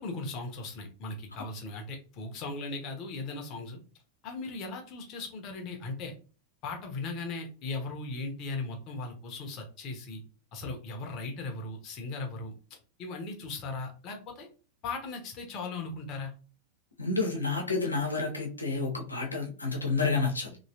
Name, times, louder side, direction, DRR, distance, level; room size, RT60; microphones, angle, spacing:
voice 1, 0.0-3.8 4.2-6.1 6.6-10.2 10.5-12.6 13.0-14.5 14.8-16.3, left 3 dB, 35° left, 3 dB, 0.9 m, -38 dB
voice 2, 17.0-20.6, left 4 dB, 80° left, 0 dB, 1.0 m, -30 dB
3.1 x 3.0 x 2.8 m, 0.37 s
figure-of-eight pair, 90°, 0 cm